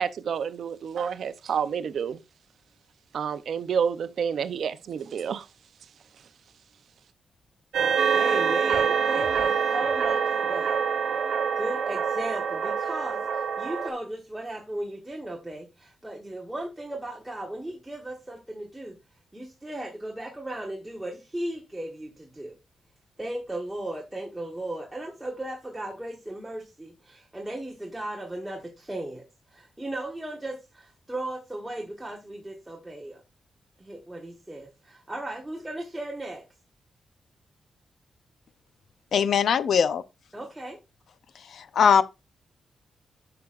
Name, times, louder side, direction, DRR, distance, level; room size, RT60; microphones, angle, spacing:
voice 1, 0.0-2.2 3.1-5.5, right 7 dB, 65° right, 0.6 m, -29 dB
sound 1, 7.7-13.9, right 6 dB, 80° right, 1.2 m, -25 dB
voice 2, 8.1-10.8 11.6-19.0 19.3-22.6 23.2-29.3 29.5-33.2 33.8-36.5 40.3-40.8, right 1 dB, 10° right, 1.1 m, -36 dB
voice 3, 39.1-40.0 41.4-42.0, left 7 dB, 65° left, 0.6 m, -21 dB
10.5 x 5.8 x 2.4 m
wide cardioid pair, 150°, 0 cm